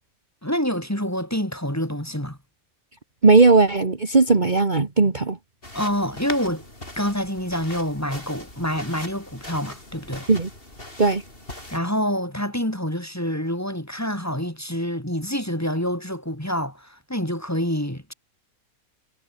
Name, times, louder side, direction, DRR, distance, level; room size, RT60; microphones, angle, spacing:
voice 1, 0.4-2.4 5.7-6.7 6.9-10.3 11.7-18.1, equal, 10° left, 3.8 m, -27 dB
voice 2, 3.2-5.4 10.3-10.5 11.0-11.2, right 3 dB, 30° right, 1.9 m, -17 dB
sound 1, 5.6-11.8, left 1 dB, 35° left, 7.0 m, -40 dB
omnidirectional pair, 1.6 m